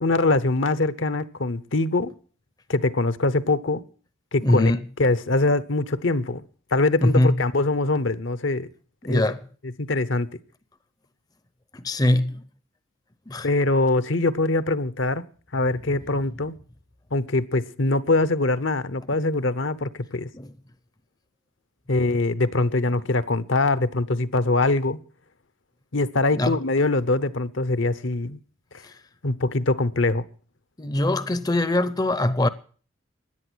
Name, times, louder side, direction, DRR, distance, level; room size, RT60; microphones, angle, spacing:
voice 1, 0.0-2.1 2.7-3.8 4.3-4.7 5.0-6.4 6.7-8.7 9.1-9.2 9.8-10.3 13.4-15.2 15.5-16.5 17.1-20.3 21.9-25.0 25.9-28.4 29.2-30.2, left 2 dB, 70° left, 0.9 m, -23 dB
voice 2, 4.4-4.8 7.0-7.4 9.0-9.4 11.7-12.4 13.3-13.5 20.3-20.5 26.3-26.6 28.8-28.9 30.8-32.5, left 1 dB, 20° left, 0.6 m, -22 dB
16.5 x 11.0 x 6.3 m
head